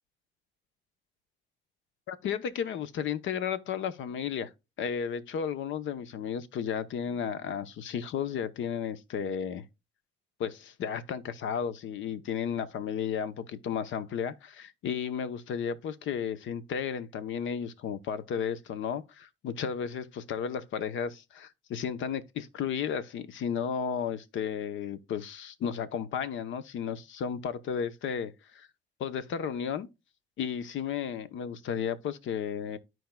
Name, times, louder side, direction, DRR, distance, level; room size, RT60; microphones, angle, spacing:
voice 1, 2.1-4.5 4.8-9.6 10.4-28.7 29.0-29.9 30.4-32.8, left 7 dB, 75° left, 0.9 m, -33 dB
13.5 x 4.6 x 2.2 m
cardioid pair, 90°, 20 cm